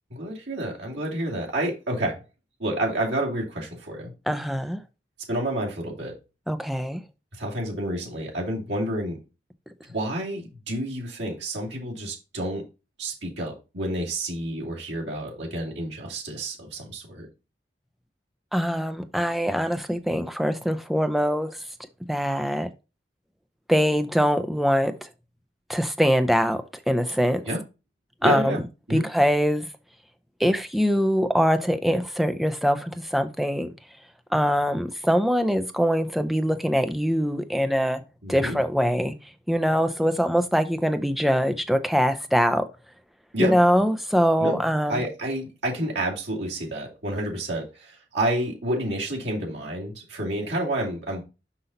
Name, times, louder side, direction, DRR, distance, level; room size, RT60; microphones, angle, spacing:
voice 1, 0.1-2.2 2.6-4.1 5.3-6.2 7.4-9.2 9.9-12.6 13.0-17.3 27.5-27.6 28.2-28.6 28.9-29.1 38.2-38.6 43.3-43.6 44.4-44.6 44.9-51.2, right 1 dB, 80° right, 2.6 m, -29 dB
voice 2, 4.3-4.8 6.5-7.0 18.5-21.5 22.1-22.7 23.7-25.1 25.7-27.4 28.2-28.6 28.9-29.7 30.4-33.7 34.3-38.0 38.3-39.1 39.5-42.7 43.4-45.1, equal, ahead, 0.5 m, -23 dB
5.8 x 5.4 x 4.0 m
head